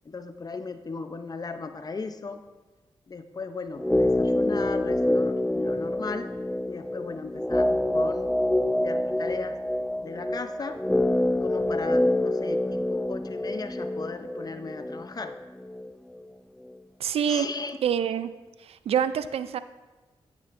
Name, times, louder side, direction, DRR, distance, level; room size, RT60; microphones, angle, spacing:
voice 1, 0.0-2.4 3.1-6.3 6.7-8.3 8.8-9.6 10.0-10.8 11.4-15.4 17.2-17.8, left 4 dB, 40° left, 9 dB, 0.7 m, -37 dB
sound 1, 3.8-16.2, left 1 dB, 5° left, 0.3 m, -26 dB
voice 2, 17.0-17.5 17.8-18.3 18.6-19.6, right 8 dB, 80° right, 13 dB, 0.4 m, -26 dB
9.1 x 8.9 x 2.6 m, 1.2 s
cardioid pair, 55°, 10 cm